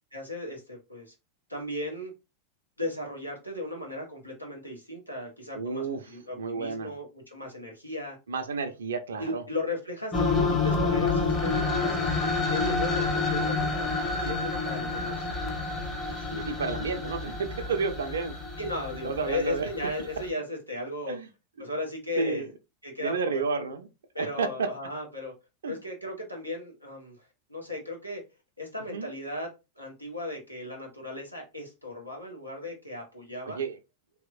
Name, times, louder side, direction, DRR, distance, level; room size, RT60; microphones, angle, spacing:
voice 1, 0.1-1.1 1.5-2.1 2.8-8.2 9.2-12.0 12.5-15.3 18.6-21.2 21.6-22.4 22.8-23.7 24.1-25.3 25.6-28.2 28.6-29.5 29.8-33.6, left 1 dB, 90° left, 1.1 m, -36 dB
voice 2, 5.5-6.9 8.3-9.4 16.1-18.4 19.0-19.7 21.1-21.3 21.6-21.7 22.2-22.5 23.0-23.9 24.2-24.7 25.6-25.8 28.9-29.1 33.4-33.8, right 4 dB, 65° right, 0.5 m, -31 dB
sound 1, 10.1-20.3, left 3 dB, 30° left, 1.0 m, -29 dB
3.1 x 2.8 x 2.4 m
figure-of-eight pair, 90°, 0 cm